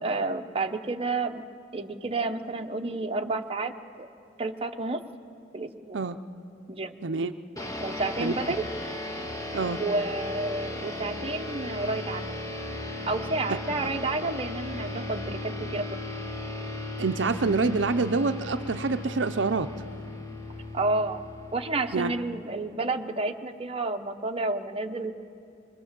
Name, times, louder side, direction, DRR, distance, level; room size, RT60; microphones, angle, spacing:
voice 1, 0.0-1.4 1.7-4.1 4.4-5.0 5.5-6.0 6.7-7.0 7.8-8.6 9.8-12.3 13.1-16.1 20.7-25.1, right 3 dB, 30° right, 5 dB, 0.9 m, -30 dB
voice 2, 7.0-7.3 8.2-8.3 9.5-9.8 17.0-19.7 21.9-22.1, right 4 dB, 80° right, 10 dB, 0.6 m, -26 dB
sound 1, 7.6-22.4, left 1 dB, 20° left, 1.9 m, -36 dB
24.5 x 22.0 x 7.5 m, 2.5 s
head